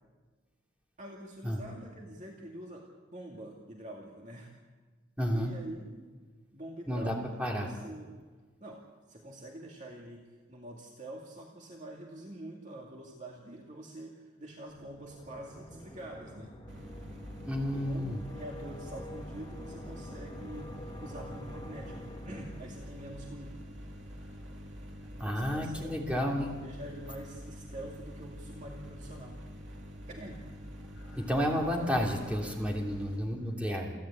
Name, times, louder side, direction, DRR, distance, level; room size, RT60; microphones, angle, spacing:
voice 1, 1.0-4.5 5.2-6.1 6.5-8.1 8.6-8.8 9.1-16.6 17.7-22.0 22.2-23.6 25.2-26.3 26.6-29.8 30.1-30.4, right 1 dB, 40° right, -1 dB, 2.2 m, -46 dB
voice 2, 5.2-5.5 6.9-7.7 17.4-18.2 25.2-26.5 31.0-33.9, equal, 5° right, -1 dB, 3.0 m, -31 dB
sound 1, 14.7-23.2, left 1 dB, 25° left, 2.0 m, -47 dB
sound 2, 16.7-33.2, equal, 75° right, 2.6 m, -46 dB
28.5 x 11.0 x 8.8 m, 1.4 s
head